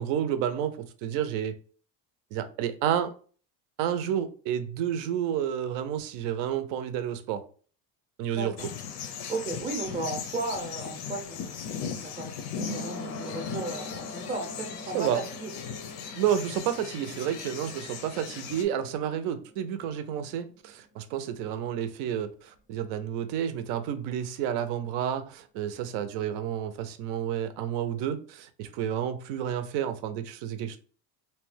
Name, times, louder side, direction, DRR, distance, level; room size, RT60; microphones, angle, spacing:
voice 1, 0.0-1.6 2.3-3.1 3.8-7.4 8.2-8.5 14.9-15.2 16.2-30.8, right 9 dB, 80° right, 0.6 m, -30 dB
voice 2, 8.4-8.7 9.3-15.5, right 3 dB, 20° right, 0.5 m, -35 dB
sound 1, 8.6-18.6, left 7 dB, 85° left, 0.6 m, -38 dB
sound 2, 9.8-21.0 21.3-21.4, left 2 dB, 30° left, 0.4 m, -44 dB
2.8 x 2.2 x 3.1 m
cardioid pair, 155°, 43 cm